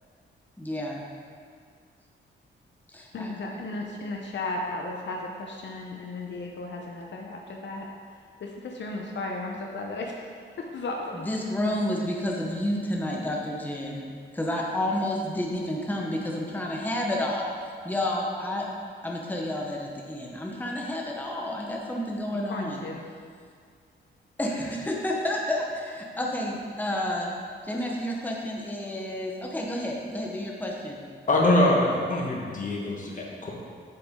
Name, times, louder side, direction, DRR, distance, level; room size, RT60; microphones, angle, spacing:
voice 1, 0.6-1.0 2.9-3.3 11.1-14.1 14.3-17.5 17.8-18.7 19.0-22.8 24.4-27.3 27.6-31.0, left 1 dB, 10° left, -1 dB, 1.0 m, -30 dB
voice 2, 3.1-7.9 8.4-11.2 22.5-23.1, left 2 dB, 65° left, 0 dB, 0.8 m, -35 dB
voice 3, 31.3-33.5, left 1 dB, 40° left, -2 dB, 1.5 m, -23 dB
8.1 x 6.7 x 3.7 m, 2.1 s
cardioid pair, 95°, 20 cm